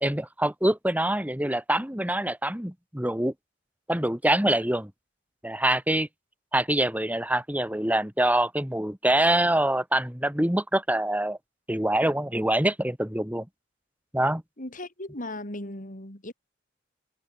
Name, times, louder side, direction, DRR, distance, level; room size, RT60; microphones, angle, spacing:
voice 1, 0.0-3.3 3.9-4.9 5.4-6.1 6.5-11.4 11.7-13.5 14.1-14.4, right 1 dB, 10° right, 2.2 m, -25 dB
voice 2, 14.6-16.3, left 1 dB, 45° left, 6.0 m, -37 dB
head